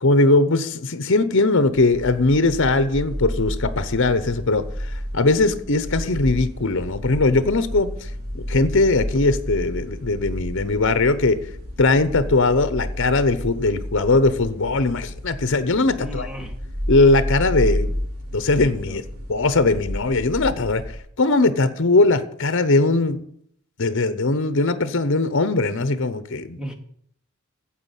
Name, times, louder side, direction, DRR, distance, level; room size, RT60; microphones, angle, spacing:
voice 1, 0.0-4.6 5.1-7.9 8.3-11.4 11.8-16.3 16.9-17.9 18.3-19.0 19.3-20.8 21.2-23.2 23.8-26.6, left 3 dB, 60° left, 13 dB, 0.9 m, -20 dB
sound 1, 1.7-21.0, equal, 80° right, 2.9 m, -31 dB
voice 2, 16.0-16.5 18.8-19.0 26.6-26.7, equal, 5° right, 4 dB, 1.5 m, -35 dB
9.7 x 7.6 x 8.2 m, 0.68 s
head